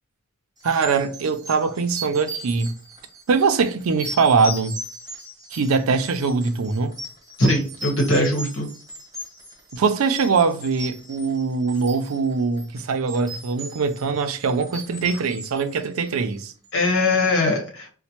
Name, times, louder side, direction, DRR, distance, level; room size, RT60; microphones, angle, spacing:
sound 1, 0.6-16.4, right 1 dB, 15° right, 1.0 m, -38 dB
voice 1, 0.6-2.7 3.3-4.7 5.5-6.9 9.7-16.5, right 5 dB, 80° right, 0.4 m, -22 dB
voice 2, 7.4-8.7 16.7-18.0, left 1 dB, 65° left, 1.2 m, -21 dB
4.2 x 2.1 x 2.9 m
head